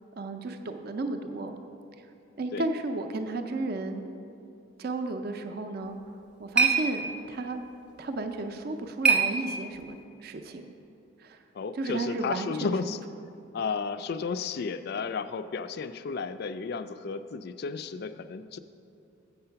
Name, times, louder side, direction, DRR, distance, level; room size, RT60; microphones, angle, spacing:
voice 1, 0.2-1.6 2.4-4.1 4.8-6.0 6.4-7.6 8.0-10.7 11.2-11.4 11.7-12.7, right 2 dB, 45° right, 6 dB, 0.4 m, -33 dB
sound 1, 5.8-10.0, right 5 dB, 5° right, 0.6 m, -29 dB
voice 2, 11.6-13.0 13.5-18.6, left 5 dB, 50° left, 12 dB, 0.3 m, -33 dB
7.8 x 6.7 x 5.6 m, 2.6 s
head